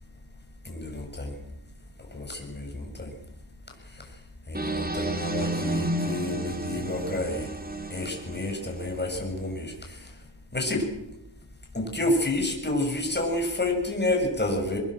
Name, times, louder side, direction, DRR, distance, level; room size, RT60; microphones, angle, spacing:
voice 1, 0.7-1.3 2.1-3.1 4.5-7.5 7.9-10.0 10.5-10.8 11.7-14.8, left 1 dB, 20° left, 2 dB, 7.0 m, -29 dB
sound 1, 4.5-9.5, right 2 dB, 20° right, 3.5 m, -34 dB
sound 2, 4.9-7.9, equal, 55° right, 6.2 m, -33 dB
23.5 x 21.0 x 7.7 m, 0.88 s
wide cardioid pair, 80°, 46 cm